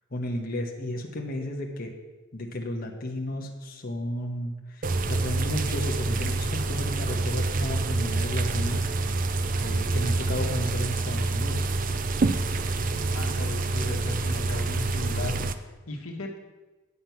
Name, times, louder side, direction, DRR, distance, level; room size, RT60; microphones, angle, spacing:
voice 1, 0.1-2.0 2.3-8.9 9.1-9.3 9.6-11.7, left 1 dB, 45° left, 0 dB, 1.1 m, -33 dB
sound 1, 4.8-15.5, right 3 dB, 40° right, 0.5 m, -27 dB
voice 2, 13.1-16.4, left 2 dB, 90° left, 2 dB, 1.5 m, -36 dB
9.6 x 7.4 x 5.9 m, 1.2 s
head